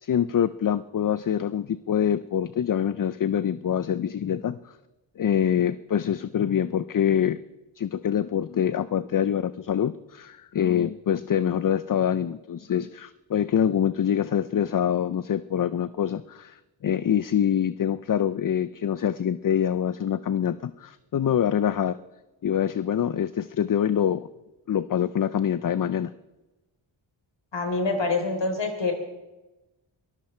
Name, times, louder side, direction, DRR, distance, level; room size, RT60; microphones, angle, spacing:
voice 1, 0.0-4.8 5.2-7.4 7.8-22.0 22.4-24.3 24.7-26.1, left 9 dB, 45° left, 15 dB, 0.5 m, -25 dB
voice 2, 27.5-28.9, left 3 dB, 60° left, 4 dB, 3.9 m, -26 dB
23.5 x 13.5 x 4.4 m, 1.1 s
cardioid pair, 70°, 48 cm